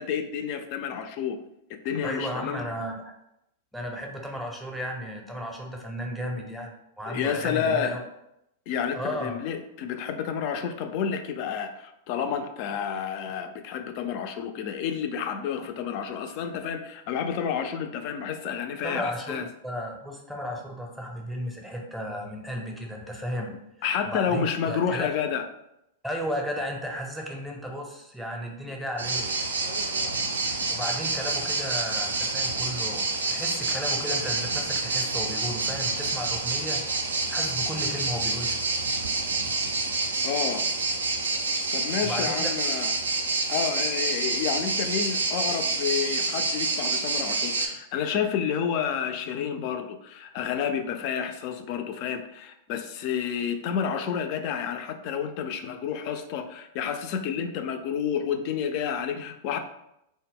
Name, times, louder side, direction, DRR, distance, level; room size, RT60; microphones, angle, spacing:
voice 1, 0.0-1.4 1.8-2.7 7.1-8.0 8.7-19.5 23.8-25.5 40.2-40.6 41.7-42.9 43.5-59.6, left 7 dB, 50° left, 7 dB, 0.3 m, -30 dB
voice 2, 2.0-3.1 3.7-8.0 8.9-9.4 18.8-19.4 19.6-23.5 24.0-25.1 26.0-29.5 30.7-36.8 37.3-38.6 42.0-42.5, equal, ahead, 0 dB, 0.6 m, -34 dB
sound 1, 29.0-47.7, right 3 dB, 80° right, 0.3 m, -28 dB
2.0 x 2.0 x 3.5 m, 0.82 s
hypercardioid pair, 100°, 0 cm